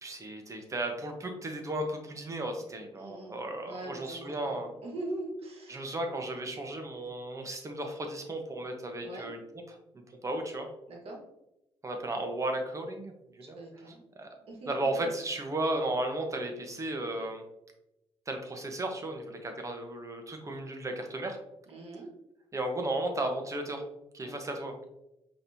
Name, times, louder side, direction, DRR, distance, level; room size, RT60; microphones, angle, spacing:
voice 1, 0.0-4.7 5.7-9.8 10.2-10.7 11.8-13.6 14.2-14.3 14.7-17.5 18.3-21.4 22.5-23.8 24.1-24.9, right 1 dB, 30° right, 4 dB, 0.9 m, -34 dB
voice 2, 3.0-5.8 9.0-9.3 10.9-11.2 13.6-14.0 14.5-15.1 21.7-22.1 24.2-24.4, right 2 dB, 60° right, 0 dB, 1.4 m, -42 dB
5.1 x 3.0 x 2.6 m, 0.88 s
cardioid pair, 75°, 11 cm